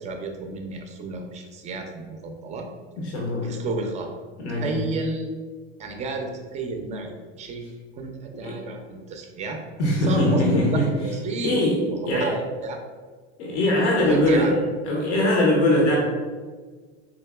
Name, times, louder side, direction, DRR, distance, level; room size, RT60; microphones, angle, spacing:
voice 1, 0.0-2.7 3.4-4.1 4.6-5.3 5.8-7.1 7.4-9.6 10.0-10.4 10.7-12.8 14.0-14.5, right 3 dB, 20° right, 3 dB, 0.4 m, -31 dB
voice 2, 3.0-3.6 4.4-4.8 8.3-8.6 9.8-10.9 11.4-12.3 13.4-14.5 14.8-16.0, left 1 dB, 80° left, -2 dB, 0.8 m, -21 dB
3.9 x 2.8 x 2.3 m, 1.5 s
hypercardioid pair, 105°, 33 cm